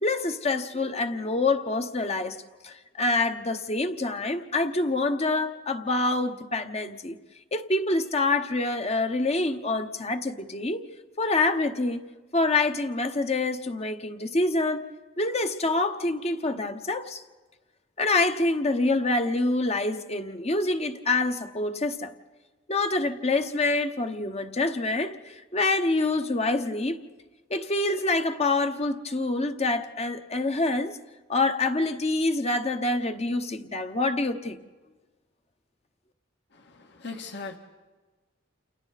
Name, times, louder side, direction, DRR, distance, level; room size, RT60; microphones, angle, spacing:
voice 1, 0.0-2.4 2.6-7.2 7.5-10.8 11.2-12.0 12.3-14.8 15.2-17.2 18.0-22.1 22.7-27.0 27.5-31.0 31.3-34.6, left 2 dB, 30° left, 1.1 m, -26 dB
voice 2, 36.5-37.6, left 4 dB, 60° left, 1.9 m, -39 dB
29.5 x 29.5 x 4.2 m
head